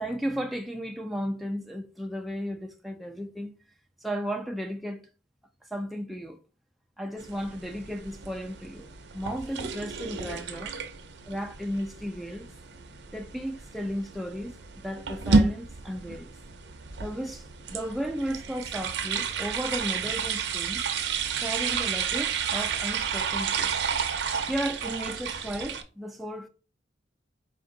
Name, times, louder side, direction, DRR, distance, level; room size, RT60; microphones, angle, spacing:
voice 1, 0.0-3.5 4.0-5.1 5.7-6.4 7.0-8.9 9.1-10.7 11.3-12.5 13.1-16.3 17.0-17.4 17.7-20.9 21.4-23.8 24.5-26.5, equal, ahead, 0.3 m, -34 dB
sound 1, 7.2-25.8, right 5 dB, 65° right, 0.6 m, -31 dB
4.4 x 2.5 x 3.8 m
head